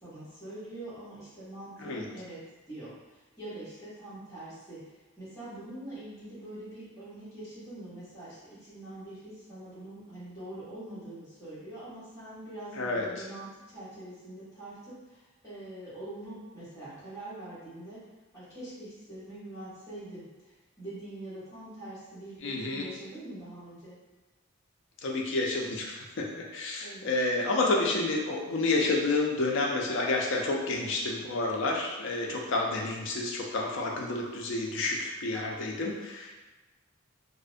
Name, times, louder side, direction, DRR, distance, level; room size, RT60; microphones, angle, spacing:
voice 1, 0.0-18.0 18.3-24.0 26.8-27.1, right 1 dB, 15° left, -13 dB, 1.2 m, -44 dB
voice 2, 22.4-22.9 25.0-36.3, left 2 dB, 60° left, -1 dB, 0.4 m, -29 dB
2.5 x 2.0 x 2.5 m, 1.2 s
head